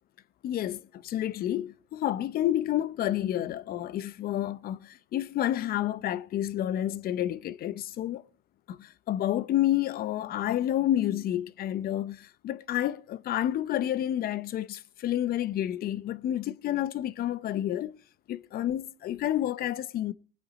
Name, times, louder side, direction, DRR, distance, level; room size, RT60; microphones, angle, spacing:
voice 1, 0.4-8.2 8.7-18.0 18.3-20.1, left 12 dB, 60° left, 0.7 m, -30 dB
19.0 x 10.0 x 4.1 m
cardioid pair, 110°, 17 cm